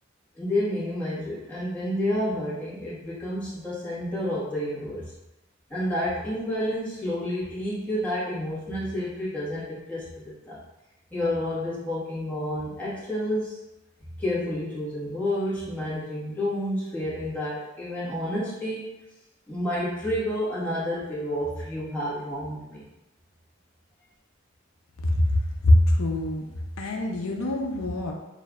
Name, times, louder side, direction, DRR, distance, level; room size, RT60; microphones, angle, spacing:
voice 1, 0.4-5.1 5.7-10.6 11.1-13.6 14.2-18.9 19.5-22.8, left 1 dB, 10° left, -10 dB, 1.5 m, -30 dB
voice 2, 25.6-26.5 26.8-28.1, left 1 dB, 85° left, 1 dB, 0.6 m, -22 dB
6.7 x 2.6 x 2.3 m, 0.94 s
head